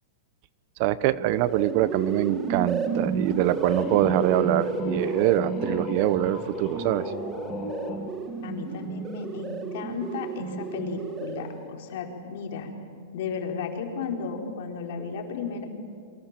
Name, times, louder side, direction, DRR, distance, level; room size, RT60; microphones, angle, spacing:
voice 1, 0.8-7.1, right 14 dB, 45° right, 17 dB, 0.9 m, -24 dB
sound 1, 1.2-11.7, right 5 dB, 25° right, 1.7 m, -32 dB
sound 2, 3.1-8.0, left 3 dB, 15° left, 6.3 m, -35 dB
voice 2, 8.4-12.7 13.1-15.7, left 5 dB, 65° left, 3 dB, 4.4 m, -34 dB
28.5 x 23.5 x 7.6 m, 2.2 s
hypercardioid pair, 140°, 0 cm